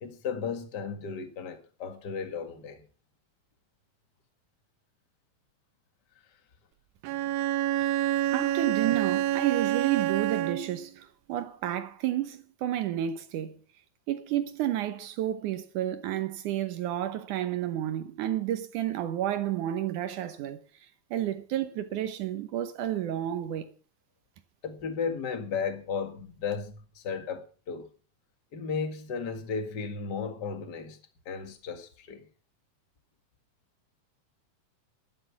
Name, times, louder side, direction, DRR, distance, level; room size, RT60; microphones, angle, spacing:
voice 1, 0.0-2.8 24.6-27.9 28.5-31.0 31.3-32.3, left 5 dB, 40° left, 1.9 m, -34 dB
Bowed string instrument, 7.0-10.9, right 13 dB, 90° right, 2.6 m, -27 dB
voice 2, 8.3-13.6 14.1-23.7, right 12 dB, 70° right, 2.3 m, -31 dB
12.0 x 12.0 x 5.8 m
omnidirectional pair, 4.0 m